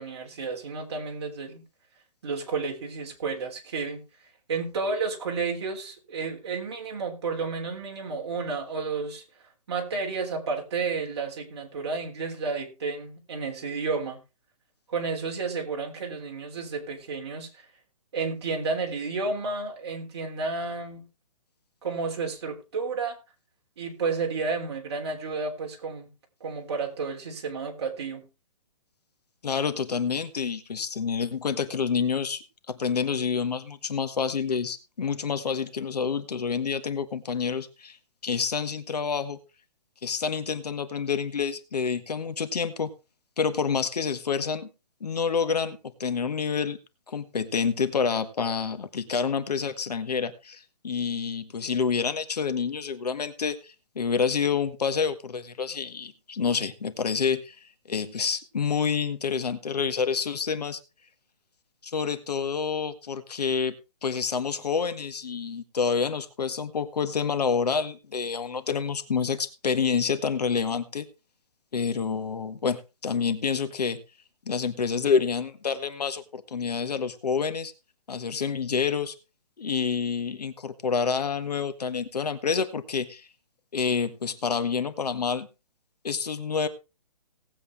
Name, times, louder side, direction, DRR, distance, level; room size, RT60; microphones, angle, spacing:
voice 1, 0.0-1.6 2.2-4.0 4.5-9.2 9.7-14.2 14.9-17.6 18.1-21.1 21.8-23.2 23.8-26.1 26.4-28.2, right 4 dB, 40° right, 1 dB, 3.2 m, -31 dB
voice 2, 29.4-32.4 32.7-38.0 38.2-39.4 40.0-42.9 43.4-44.7 45.0-46.8 47.1-57.5 57.9-60.8 61.8-63.7 64.0-71.1 71.7-72.8 73.0-74.0 74.4-77.7 78.1-79.1 79.6-83.3 83.7-85.5 86.0-86.7, left 6 dB, 80° left, 11 dB, 1.8 m, -28 dB
18.5 x 8.1 x 3.4 m, 0.29 s
hypercardioid pair, 175°, 20 cm